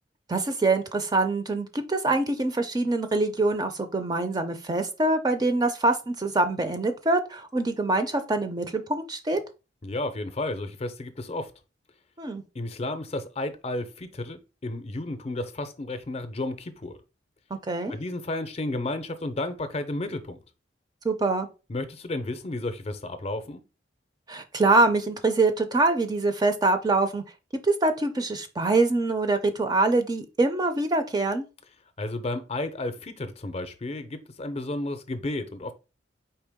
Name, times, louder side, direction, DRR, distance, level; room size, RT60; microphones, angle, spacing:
voice 1, 0.3-9.4 12.2-12.4 17.7-18.0 21.0-21.5 24.3-27.2 27.6-31.4, right 2 dB, 20° right, 0.4 m, -24 dB
voice 2, 9.8-11.5 12.5-17.0 17.9-20.4 21.7-23.6 32.0-35.7, left 2 dB, 35° left, 0.5 m, -32 dB
4.5 x 3.3 x 3.5 m
head